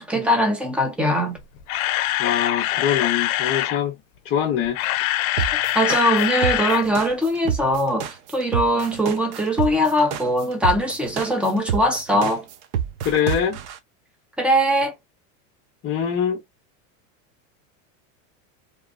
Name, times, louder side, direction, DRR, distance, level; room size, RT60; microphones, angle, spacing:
voice 1, 0.0-1.4 5.4-12.5 14.4-15.0, equal, 5° right, 0.5 m, -21 dB
Camera, 1.4-3.8 4.6-6.8 7.1-7.3 7.7-7.8, left 15 dB, 85° left, 0.5 m, -24 dB
voice 2, 2.2-4.0 4.2-4.8 13.0-13.6 15.8-16.4, left 8 dB, 30° left, 0.8 m, -23 dB
sound 1, 5.4-13.8, right 9 dB, 60° right, 0.7 m, -27 dB
2.9 x 2.3 x 2.4 m
supercardioid pair, 150°, 41 cm